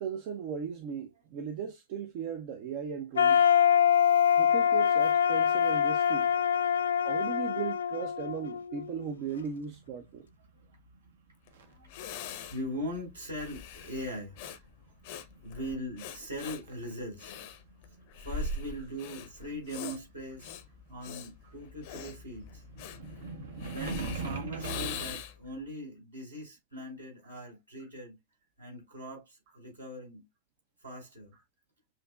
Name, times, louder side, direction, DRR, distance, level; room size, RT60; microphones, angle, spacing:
voice 1, 0.0-3.5 4.4-6.3 7.0-10.3 12.3-12.5 24.9-25.0, right 7 dB, 45° right, 0.7 m, -37 dB
sound 1, 3.1-9.1, left 8 dB, 65° left, 0.3 m, -25 dB
voice 2, 3.9-4.4 6.8-6.9 10.5-10.6 11.5-14.6 15.4-17.4 18.2-20.5 20.9-22.6 23.6-28.2 28.6-30.2 30.8-31.3, equal, 75° right, 3.9 m, -41 dB
sound 2, 9.1-12.0 12.3-13.5 14.3-15.8 16.0-21.2 21.4-25.2, right 4 dB, 60° right, 1.0 m, -42 dB
Breathing, 11.5-11.6 11.9-25.5, left 4 dB, 50° left, 0.7 m, -42 dB
7.6 x 2.8 x 2.3 m
figure-of-eight pair, 90°, 0 cm